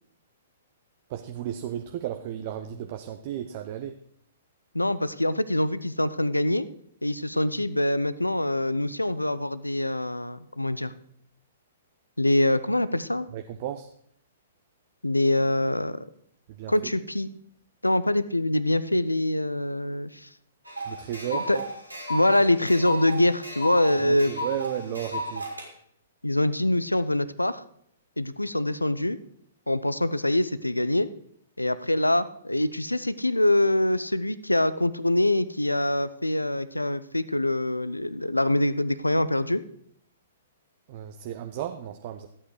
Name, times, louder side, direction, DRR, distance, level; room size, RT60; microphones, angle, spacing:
voice 1, 1.1-4.0 13.3-13.9 16.5-17.0 20.9-21.6 24.0-25.5 40.9-42.3, right 10 dB, 40° right, 6 dB, 0.8 m, -34 dB
voice 2, 4.7-6.7 7.0-10.9 12.2-13.3 15.0-16.0 16.7-17.3 17.8-20.3 21.5-21.6 22.1-24.3 26.2-27.6 28.2-29.2 29.7-31.1 31.6-39.6, left 1 dB, 85° left, 16 dB, 0.6 m, -24 dB
sound 1, 20.7-25.7, equal, 85° right, 2.9 m, -34 dB
13.5 x 8.7 x 4.8 m, 0.68 s
figure-of-eight pair, 115°, 0 cm